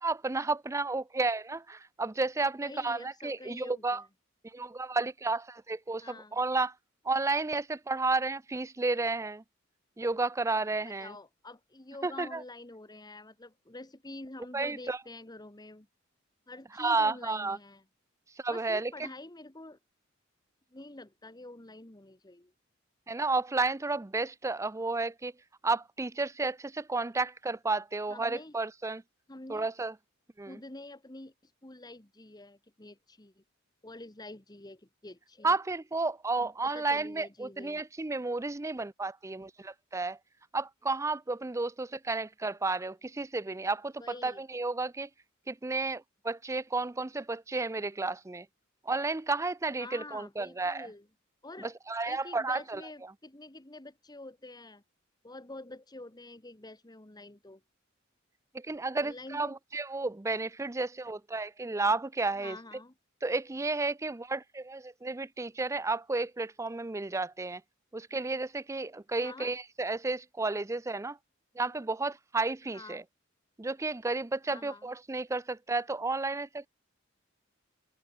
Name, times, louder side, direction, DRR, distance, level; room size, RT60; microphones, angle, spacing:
voice 1, 0.0-4.0 4.5-6.7 7.0-9.4 10.0-11.2 12.0-12.4 14.5-15.0 16.8-17.6 18.4-19.1 23.1-25.3 25.6-29.0 29.5-29.9 30.4-30.6 35.4-40.2 40.5-45.1 45.5-48.5 48.8-50.9 51.6-52.8 58.5-62.6 63.2-67.6 67.9-71.2 71.6-73.0 73.6-76.7, right 3 dB, 15° right, 0.5 m, -32 dB
voice 2, 2.6-4.0 6.0-6.4 10.8-15.9 16.5-17.8 18.5-19.8 20.7-22.5 28.1-28.5 29.3-29.7 30.5-33.4 33.8-35.6 36.4-37.8 44.0-44.4 49.8-51.1 51.4-51.7 52.0-54.8 55.2-57.6 59.0-59.6 62.4-62.9 69.2-69.5 72.7-73.0 74.5-74.9, left 2 dB, 20° left, 1.4 m, -47 dB
head